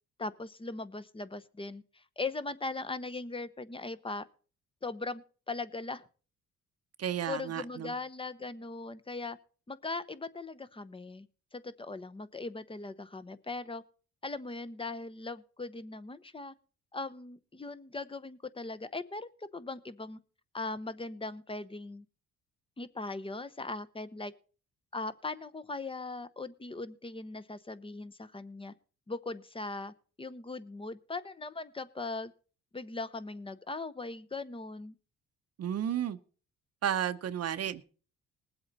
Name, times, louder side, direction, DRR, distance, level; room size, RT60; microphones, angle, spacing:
voice 1, 0.2-4.2 4.8-6.1 7.3-9.4 9.7-11.3 11.5-13.8 14.2-16.5 16.9-20.2 20.5-22.0 22.8-24.3 24.9-28.7 29.1-32.3 32.7-34.9, left 3 dB, 15° left, 14 dB, 0.9 m, -39 dB
voice 2, 7.0-7.9 35.6-36.2 36.8-37.8, right 10 dB, 55° right, 9 dB, 0.8 m, -32 dB
20.0 x 7.9 x 4.1 m, 0.39 s
cardioid pair, 90°, 30 cm